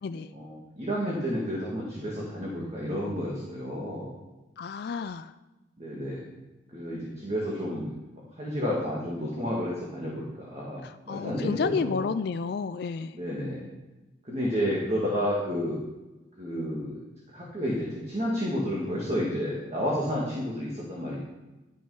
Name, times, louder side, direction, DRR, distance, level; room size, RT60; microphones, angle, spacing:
voice 1, 0.3-4.1 5.8-6.2 6.7-7.9 8.4-12.1 13.1-13.6 14.2-15.8 16.4-17.0 17.3-21.2, equal, 35° right, -4 dB, 1.9 m, -31 dB
voice 2, 4.6-5.3 10.8-13.2, left 5 dB, 55° left, 10 dB, 0.3 m, -31 dB
11.5 x 6.3 x 5.5 m, 1.1 s
head